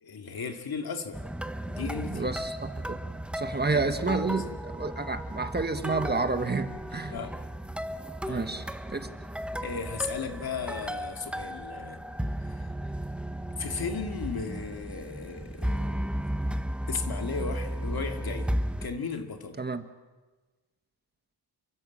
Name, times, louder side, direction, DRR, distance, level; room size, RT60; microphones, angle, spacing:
voice 1, 0.0-1.2 1.7-2.3 3.5-4.5 7.1-7.3 8.3-8.5 9.6-12.0 12.5-12.7 13.6-16.1 16.9-18.5 18.8-19.6, left 5 dB, 55° left, 4 dB, 2.5 m, -36 dB
sound 1, 1.1-18.9, equal, 5° right, 0.7 m, -34 dB
voice 2, 2.1-3.0 3.3-7.1 8.3-9.1 19.6-19.8, right 3 dB, 25° right, 7 dB, 1.3 m, -30 dB
28.5 x 23.5 x 7.5 m, 1.2 s
wide cardioid pair, 160°, 42 cm